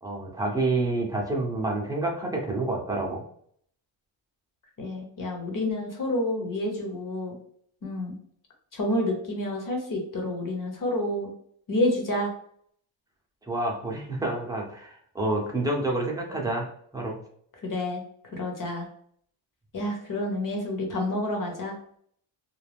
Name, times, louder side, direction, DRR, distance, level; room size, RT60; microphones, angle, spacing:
voice 1, 0.0-3.2 13.5-17.2, right 2 dB, 5° right, -2 dB, 0.8 m, -28 dB
voice 2, 4.8-7.4 7.8-8.2 8.7-11.3 11.7-12.3 17.6-18.0 18.3-18.9 19.7-21.7, left 1 dB, 40° left, 1 dB, 1.0 m, -29 dB
2.4 x 2.1 x 3.4 m, 0.62 s
cardioid pair, 85°, 49 cm